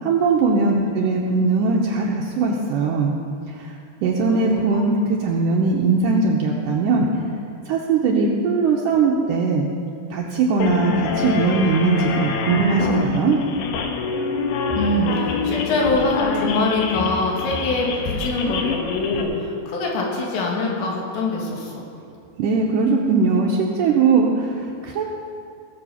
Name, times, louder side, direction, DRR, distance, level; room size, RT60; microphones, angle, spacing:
voice 1, 0.0-3.1 3.6-3.7 4.0-7.1 7.7-9.7 10.1-13.4 22.4-25.0, right 4 dB, 85° right, -2 dB, 1.9 m, -20 dB
sound 1, 10.6-19.2, left 5 dB, 70° left, 2.3 m, -26 dB
voice 2, 14.8-21.9, left 2 dB, 90° left, -2 dB, 4.2 m, -24 dB
18.5 x 7.2 x 5.6 m, 2.5 s
omnidirectional pair, 5.0 m